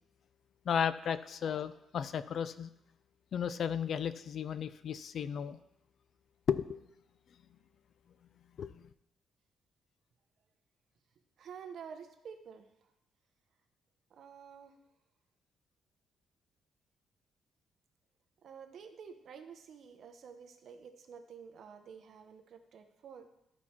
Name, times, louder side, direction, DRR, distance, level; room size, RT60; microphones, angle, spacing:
voice 1, 0.7-2.7 3.3-5.6 6.5-6.8 8.6-8.8, left 8 dB, 50° left, 14 dB, 0.3 m, -34 dB
voice 2, 11.4-12.7 14.1-14.7 18.4-23.3, right 6 dB, 55° right, 7 dB, 0.8 m, -50 dB
13.0 x 4.5 x 4.3 m, 0.83 s
cardioid pair, 155°, 0 cm